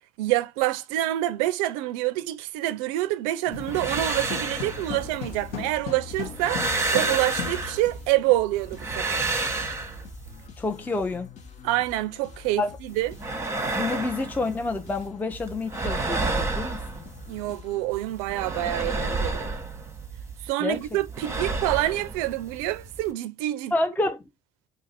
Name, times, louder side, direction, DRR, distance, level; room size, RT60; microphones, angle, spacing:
voice 1, 0.2-6.7 6.9-9.2 11.6-13.1 17.3-19.5 20.4-23.7, right 16 dB, 85° right, 0.4 m, -27 dB
sound 1, 3.5-8.1, left 6 dB, 75° left, 1.1 m, -37 dB
sound 2, 3.5-5.7 6.1-8.2 8.6-10.5 12.9-15.1 15.3-17.6 17.9-20.5 20.7-23.1, right 3 dB, 15° right, 0.8 m, -31 dB
sound 3, 3.9-18.5, left 6 dB, 45° left, 0.9 m, -47 dB
voice 2, 10.6-11.3 12.6-12.8 13.7-17.0 20.6-20.8 23.7-24.2, left 2 dB, 10° left, 0.4 m, -28 dB
2.6 x 2.4 x 4.0 m
supercardioid pair, 80°, 17 cm